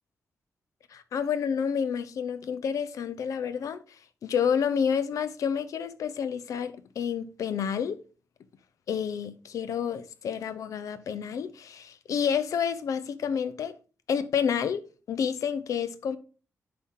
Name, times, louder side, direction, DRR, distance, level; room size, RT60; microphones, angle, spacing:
voice 1, 0.9-3.8 4.2-8.0 8.9-13.7 14.1-16.2, left 7 dB, 85° left, 0.7 m, -29 dB
10.5 x 3.8 x 3.7 m
wide cardioid pair, 155°, 6 cm